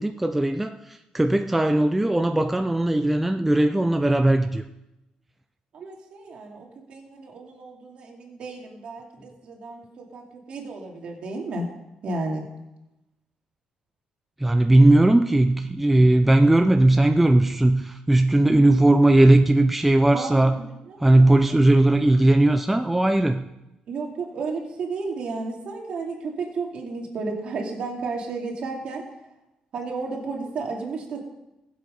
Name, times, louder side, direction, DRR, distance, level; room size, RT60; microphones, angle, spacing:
voice 1, 0.0-4.6 14.4-20.6 21.0-23.4, right 1 dB, 5° right, 7 dB, 0.5 m, -18 dB
voice 2, 5.7-11.7 12.0-12.5 20.1-21.6 23.9-29.1 29.7-31.2, right 3 dB, 50° right, 1 dB, 2.5 m, -33 dB
19.5 x 7.8 x 5.3 m, 0.94 s
cardioid pair, 170°, 2 cm